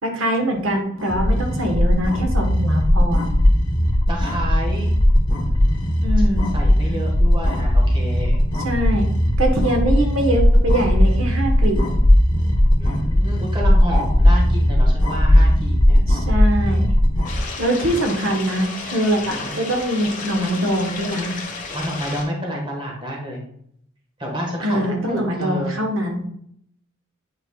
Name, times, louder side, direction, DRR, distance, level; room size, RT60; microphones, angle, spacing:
voice 1, 0.0-3.2 6.0-6.5 8.6-9.1 9.4-11.8 16.1-16.9 17.6-21.4 24.6-26.2, right 1 dB, 85° right, 3 dB, 1.3 m, -23 dB
sound 1, 1.0-17.4, left 1 dB, 25° left, 1.1 m, -17 dB
voice 2, 4.1-4.9 5.3-6.2 6.5-8.4 12.8-16.0 19.3-19.5 21.7-23.4 24.2-25.7, equal, 25° right, -1 dB, 1.5 m, -29 dB
sound 2, 17.2-22.2, left 4 dB, 40° left, 1.3 m, -32 dB
8.9 x 4.5 x 2.4 m, 0.69 s
head